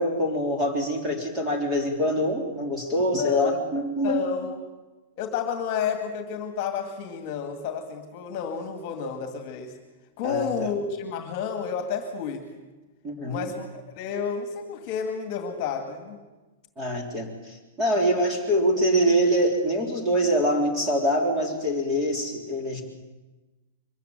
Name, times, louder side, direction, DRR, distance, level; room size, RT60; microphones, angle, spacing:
voice 1, 0.0-4.3 10.2-10.7 13.0-13.5 16.8-22.8, equal, 15° right, 1 dB, 3.5 m, -25 dB
voice 2, 3.1-3.6 4.0-4.6 5.2-9.7 10.2-12.5 13.3-13.7 14.0-16.2 17.9-18.2, left 6 dB, 35° left, 6 dB, 2.3 m, -30 dB
23.5 x 14.5 x 9.1 m, 1.2 s
supercardioid pair, 170°, 0 cm